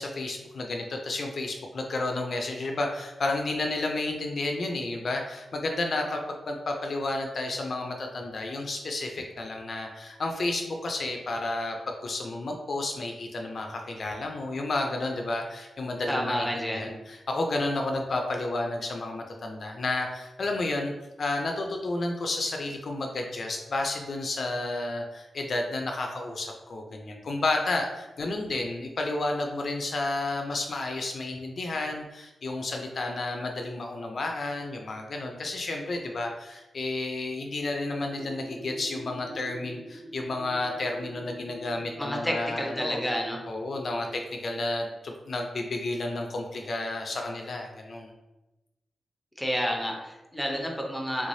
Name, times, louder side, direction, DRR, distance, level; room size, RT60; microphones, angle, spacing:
voice 1, 0.0-11.8 12.0-20.9 21.2-43.0 43.5-48.1, left 2 dB, 50° left, 2 dB, 0.4 m, -31 dB
voice 2, 16.1-16.9 42.0-43.4 49.4-51.3, equal, ahead, 0 dB, 0.6 m, -30 dB
sound 1, 38.1-44.3, right 1 dB, 20° right, 1.1 m, -44 dB
3.3 x 3.1 x 2.6 m, 1.0 s
wide cardioid pair, 135°, 0 cm